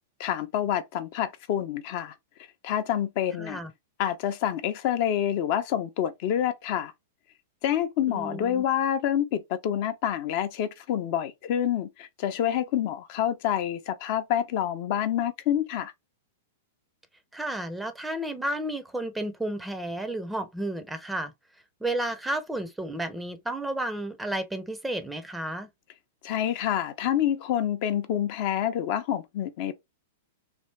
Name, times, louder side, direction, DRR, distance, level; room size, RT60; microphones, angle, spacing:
voice 1, 0.2-2.1 2.6-3.6 4.0-6.9 7.6-15.9 26.2-29.7, left 10 dB, 50° left, 0.6 m, -27 dB
voice 2, 3.4-3.7 8.1-8.6 17.3-21.3 21.8-25.7, right 1 dB, 5° right, 0.5 m, -32 dB
3.3 x 2.5 x 3.2 m
hypercardioid pair, 105°, 0 cm